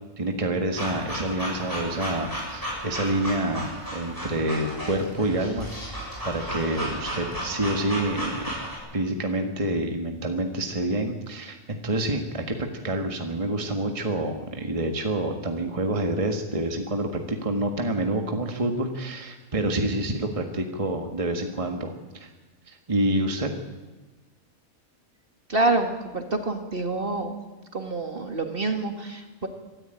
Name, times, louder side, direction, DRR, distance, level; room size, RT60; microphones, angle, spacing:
voice 1, 0.2-8.6 8.9-22.3 22.7-23.5, right 1 dB, 25° right, 4 dB, 1.6 m, -28 dB
sound 1, 0.7-8.8, equal, 15° left, 7.1 m, -34 dB
voice 2, 25.5-27.3 27.7-29.5, right 2 dB, 40° right, 5 dB, 2.1 m, -27 dB
25.0 x 13.0 x 9.0 m, 1.2 s
omnidirectional pair, 1.4 m